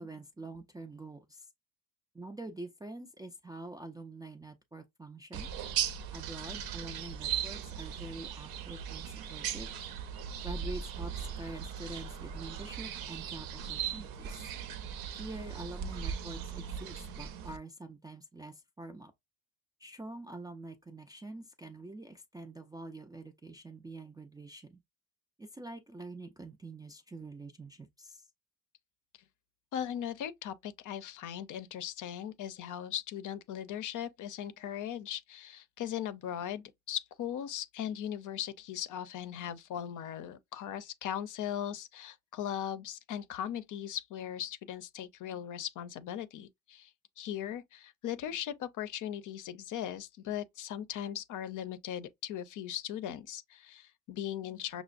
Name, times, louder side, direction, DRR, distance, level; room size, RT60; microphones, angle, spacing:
voice 1, 0.0-1.5 2.1-5.5 6.1-9.7 10.4-14.5 15.1-19.1 19.8-24.8 25.4-28.3, right 2 dB, 10° right, 0.3 m, -46 dB
sound 1, 5.3-17.6, right 8 dB, 65° right, 0.7 m, -38 dB
voice 2, 29.7-46.9 47.2-54.8, left 10 dB, 50° left, 0.6 m, -38 dB
5.9 x 2.0 x 2.4 m
cardioid pair, 115°, 39 cm